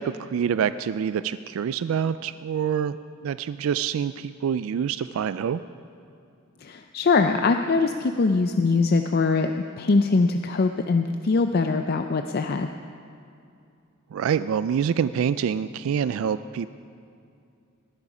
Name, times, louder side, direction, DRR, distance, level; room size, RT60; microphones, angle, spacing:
voice 1, 0.0-3.0 3.2-5.6 14.1-16.7, right 8 dB, 75° right, 13 dB, 0.3 m, -26 dB
voice 2, 6.6-9.5 9.8-12.7, left 4 dB, 45° left, 6 dB, 0.4 m, -22 dB
18.5 x 11.0 x 4.9 m, 2.5 s
head